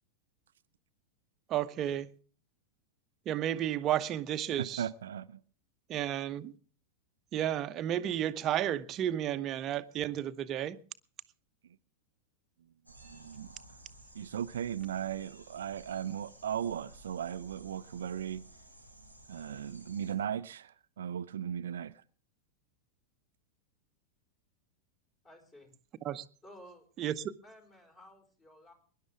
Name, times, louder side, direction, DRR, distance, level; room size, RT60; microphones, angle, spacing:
voice 1, 1.5-2.1 3.3-4.8 5.9-6.5 7.3-10.8 26.0-26.2 27.0-27.3, right 11 dB, 30° right, 0.9 m, -32 dB
voice 2, 4.6-5.4 13.0-13.5 14.1-18.4 19.3-21.9, right 9 dB, 65° right, 0.6 m, -37 dB
sound 1, 12.9-20.1, right 1 dB, 85° left, 4.6 m, -55 dB
voice 3, 25.2-25.7 26.4-26.9 27.4-28.7, equal, 20° left, 5.3 m, -54 dB
23.5 x 11.0 x 3.6 m
figure-of-eight pair, 90°, 0 cm